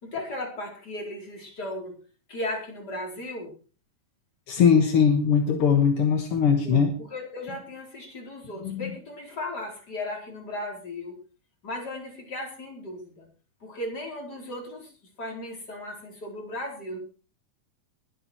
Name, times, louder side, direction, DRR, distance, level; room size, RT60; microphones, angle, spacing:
voice 1, 0.0-2.0 2.3-3.5 6.6-11.2 11.6-13.3 13.6-14.9 15.2-17.0, left 1 dB, 30° left, 0 dB, 4.9 m, -36 dB
voice 2, 4.5-7.0 8.6-8.8, left 6 dB, 50° left, 5 dB, 1.9 m, -20 dB
21.5 x 8.9 x 4.5 m, 0.36 s
omnidirectional pair, 3.9 m